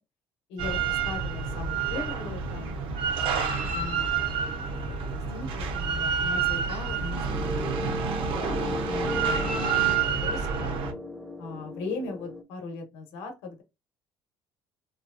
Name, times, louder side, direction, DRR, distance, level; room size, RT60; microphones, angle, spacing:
voice 1, 0.5-4.3 4.9-10.7 11.4-13.6, left 3 dB, 85° left, 4 dB, 0.9 m, -39 dB
Drill, 0.6-10.9, right 6 dB, 65° right, 0.6 m, -28 dB
sound 1, 7.0-12.4, left 1 dB, 5° right, 0.5 m, -36 dB
2.9 x 2.2 x 2.5 m, 0.23 s
cardioid pair, 100°, 10 cm